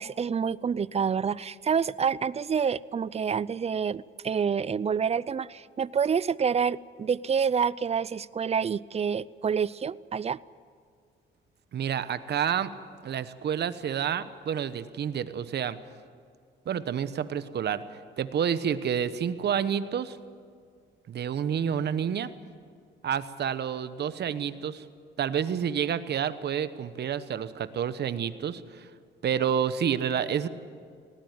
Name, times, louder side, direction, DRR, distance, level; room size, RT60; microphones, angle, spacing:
voice 1, 0.0-10.4, right 6 dB, 30° right, 21 dB, 0.5 m, -28 dB
voice 2, 11.7-12.7 13.0-15.8 16.7-17.8 18.2-20.2 21.1-22.3 23.0-24.8 25.2-28.9 29.2-30.5, right 8 dB, 55° right, 13 dB, 1.1 m, -29 dB
19.0 x 17.5 x 9.5 m, 2.1 s
cardioid pair, 90°, 20 cm